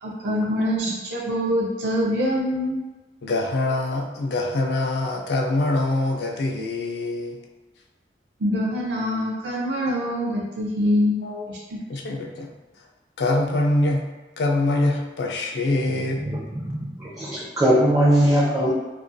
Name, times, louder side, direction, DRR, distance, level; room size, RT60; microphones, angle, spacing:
voice 1, 0.0-2.8 8.4-11.2 11.5-11.6, equal, 75° right, -4 dB, 0.5 m, -24 dB
voice 2, 3.2-7.4 11.2-11.5 11.9-12.5 13.2-14.0 14.4-16.2, left 2 dB, 65° left, 1 dB, 0.4 m, -24 dB
voice 3, 16.2-18.7, equal, 20° right, -7 dB, 0.4 m, -20 dB
2.3 x 2.2 x 2.5 m, 1.2 s
head